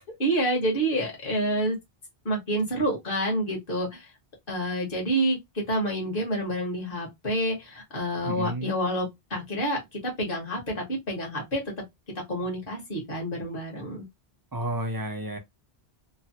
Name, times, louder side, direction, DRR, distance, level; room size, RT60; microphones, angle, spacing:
voice 1, 0.2-1.8 2.2-4.1 4.5-11.6 12.3-14.0, right 1 dB, 60° left, 1.4 m, -28 dB
voice 2, 8.3-8.7 14.5-15.4, right 1 dB, 30° right, 0.4 m, -31 dB
3.1 x 2.1 x 2.7 m
omnidirectional pair, 1.0 m